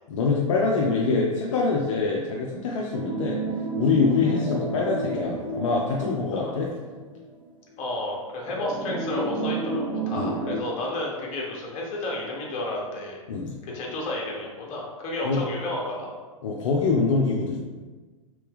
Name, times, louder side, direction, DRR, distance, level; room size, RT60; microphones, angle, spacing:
voice 1, 0.1-3.4 3.8-6.7 10.1-10.4 13.3-13.5 15.2-15.4 16.4-17.6, left 4 dB, 60° left, -2 dB, 0.6 m, -24 dB
sound 1, 2.9-7.3 7.7-7.8 8.5-10.6, right 3 dB, 25° right, 0.7 m, -31 dB
voice 2, 7.8-13.2 13.6-16.1, left 1 dB, 35° left, -2 dB, 1.2 m, -32 dB
3.4 x 3.3 x 3.4 m, 1.3 s
figure-of-eight pair, 100°, 17 cm